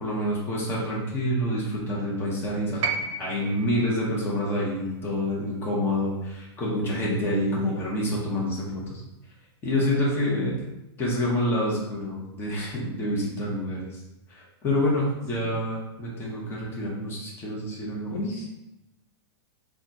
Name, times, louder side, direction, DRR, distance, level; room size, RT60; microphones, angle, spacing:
voice 1, 0.0-2.8 3.2-9.0 9.6-10.6 11.0-14.0 14.3-18.2, left 1 dB, 15° left, -5 dB, 0.9 m, -27 dB
sound 1, 2.8-7.0 8.2-8.3, right 4 dB, 90° right, 0.5 m, -35 dB
voice 2, 7.0-7.7 9.8-10.3 10.6-10.7 15.4-15.5 18.1-18.4, left 2 dB, 40° left, -3 dB, 0.7 m, -33 dB
4.3 x 2.3 x 2.7 m, 0.91 s
supercardioid pair, 145°, 14 cm